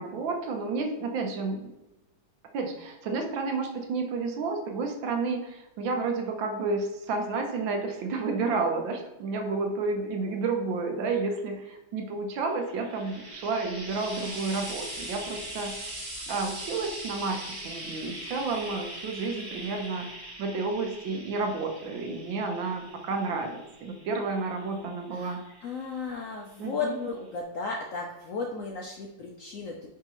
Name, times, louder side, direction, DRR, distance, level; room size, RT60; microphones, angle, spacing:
voice 1, 0.0-1.7 2.5-15.9 16.3-25.4 26.6-27.0, right 3 dB, 85° right, 4 dB, 1.6 m, -31 dB
Frying (food), 12.5-26.0 26.9-27.0, right 1 dB, 20° right, 0.7 m, -41 dB
voice 2, 24.2-29.7, left 4 dB, 70° left, 0 dB, 0.7 m, -35 dB
9.6 x 3.6 x 3.0 m, 0.99 s
omnidirectional pair, 2.0 m